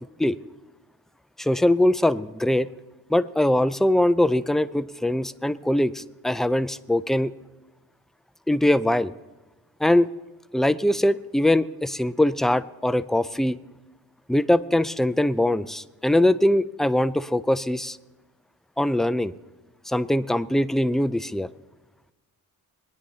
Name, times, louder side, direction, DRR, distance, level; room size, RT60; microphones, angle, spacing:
voice 1, 1.4-2.7 3.1-7.3 8.5-9.1 9.8-10.1 10.5-13.6 14.3-18.0 18.8-19.3 19.9-21.5, left 1 dB, ahead, 14 dB, 0.4 m, -22 dB
22.5 x 10.0 x 2.8 m, 1.2 s
cardioid pair, 65°, 38 cm